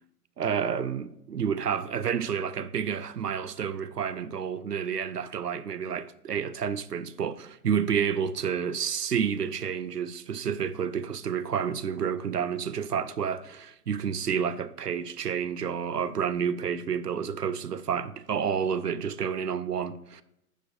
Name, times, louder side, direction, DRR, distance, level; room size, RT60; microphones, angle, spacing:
voice 1, 0.4-20.2, right 7 dB, 90° right, 0.6 m, -30 dB
9.9 x 5.1 x 2.7 m
figure-of-eight pair, 125°, 46 cm